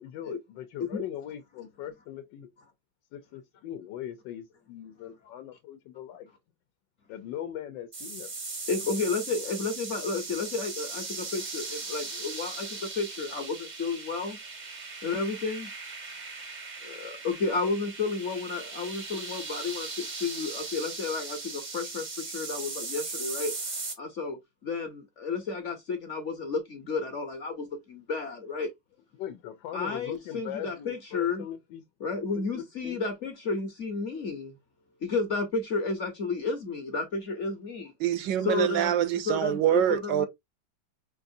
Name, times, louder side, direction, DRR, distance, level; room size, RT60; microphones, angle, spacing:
voice 1, 0.0-2.5 3.1-6.3 7.1-8.3 29.2-31.8 32.3-33.0, left 11 dB, 80° left, 1.3 m, -40 dB
sound 1, 7.9-23.9, right 3 dB, 40° right, 0.6 m, -38 dB
voice 2, 8.7-14.4 15.0-15.7 16.8-23.5 24.0-28.7 29.7-31.4 32.0-34.6 35.0-37.9 38.4-40.3, left 4 dB, 50° left, 0.9 m, -32 dB
voice 3, 38.0-40.3, right 12 dB, 75° right, 1.3 m, -25 dB
5.2 x 2.5 x 2.6 m
omnidirectional pair, 2.0 m